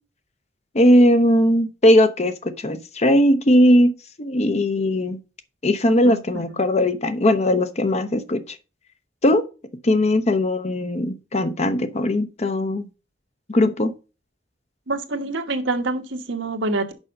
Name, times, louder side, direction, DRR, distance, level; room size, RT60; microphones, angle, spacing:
voice 1, 0.7-3.9 4.2-5.2 5.6-8.4 9.2-9.4 9.8-12.9 13.5-13.9, left 1 dB, 35° left, 0.8 m, -18 dB
voice 2, 6.0-6.4 14.9-16.9, right 2 dB, 90° right, 1.3 m, -26 dB
6.2 x 5.5 x 5.3 m
head